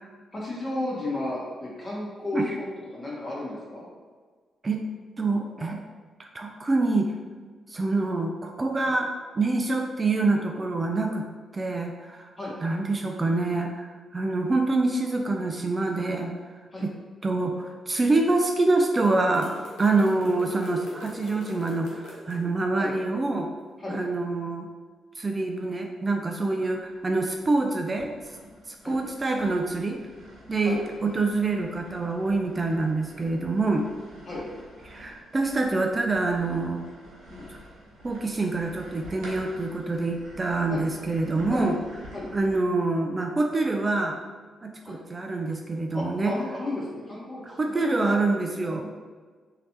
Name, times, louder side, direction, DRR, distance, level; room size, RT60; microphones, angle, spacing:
voice 1, 0.3-2.4 2.9-3.9 8.8-8.9 12.4-12.5 16.7-16.9 20.2-20.4 22.8-22.9 23.8-24.0 26.5-26.6 28.8-29.0 30.6-30.8 34.3-34.5 37.3-37.5 40.7-40.9 41.5-41.7 42.1-42.3 44.8-45.0 45.9-48.1 48.6-48.8, left 2 dB, 35° left, -6 dB, 1.4 m, -34 dB
voice 2, 5.2-5.8 6.2-7.1 7.7-11.2 11.5-12.3 12.6-16.3 16.8-16.9 17.2-19.5 19.8-23.5 23.9-24.7 25.2-28.1 28.7-30.0 30.5-33.9 34.9-36.8 38.0-41.8 42.3-44.2 44.6-46.3 47.5-49.0, right 3 dB, 35° right, 3 dB, 0.3 m, -26 dB
sound 1, 19.3-22.4, left 1 dB, 80° left, 0.7 m, -42 dB
sound 2, 26.8-27.4 28.0-42.6, equal, 80° right, 1.0 m, -48 dB
3.1 x 2.8 x 3.0 m, 1.5 s
hypercardioid pair, 45°, 0 cm